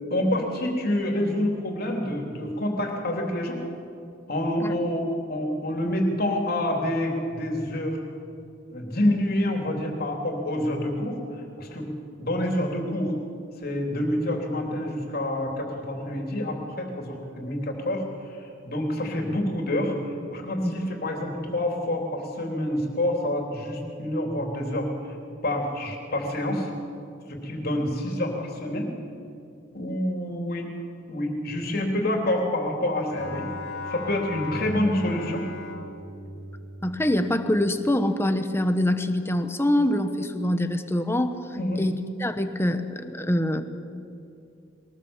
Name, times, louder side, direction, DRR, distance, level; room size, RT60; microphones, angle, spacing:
voice 1, 0.1-3.6 4.3-8.0 8.7-11.9 12.2-13.1 13.6-18.0 18.4-20.0 20.3-24.9 25.4-26.7 27.3-28.9 29.7-30.7 31.1-33.5 33.9-35.5 41.6-41.8, left 1 dB, 50° left, 1 dB, 3.5 m, -27 dB
Bowed string instrument, 33.1-37.6, left 2 dB, 80° left, 3.2 m, -37 dB
voice 2, 36.8-41.4 41.8-43.6, left 1 dB, 10° left, 8 dB, 1.1 m, -24 dB
22.5 x 19.5 x 7.4 m, 2.6 s
head